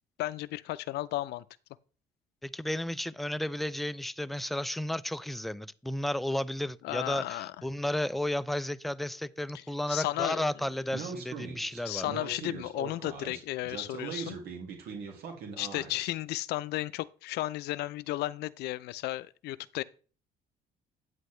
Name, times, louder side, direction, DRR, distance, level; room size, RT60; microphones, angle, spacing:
voice 1, 0.2-1.4 6.8-7.5 9.5-10.5 11.9-14.4 15.6-19.8, left 16 dB, 75° left, 0.5 m, -34 dB
voice 2, 2.4-12.1, left 1 dB, ahead, 0.3 m, -33 dB
Speech, 10.9-16.1, right 5 dB, 75° right, 2.2 m, -40 dB
9.0 x 8.1 x 3.2 m
cardioid pair, 110°, 17 cm